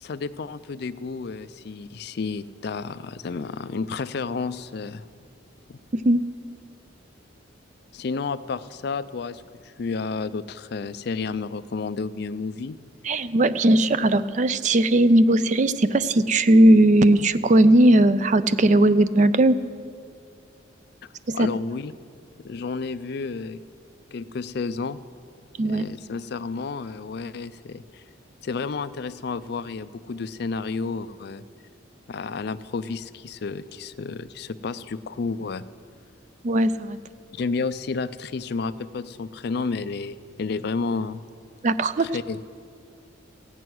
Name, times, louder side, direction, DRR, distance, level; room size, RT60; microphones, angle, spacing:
voice 1, 0.0-5.1 5.7-5.8 7.9-12.8 21.3-21.9 22.4-23.6 24.1-25.0 25.6-28.0 28.4-31.4 32.1-35.6 37.3-41.2 42.0-42.4, left 4 dB, 55° left, 14 dB, 0.4 m, -31 dB
voice 2, 13.0-19.6 21.3-21.5 25.6-25.9 36.4-37.0 41.6-42.1, right 1 dB, 40° right, 13 dB, 0.4 m, -18 dB
15.0 x 6.2 x 9.3 m, 2.2 s
head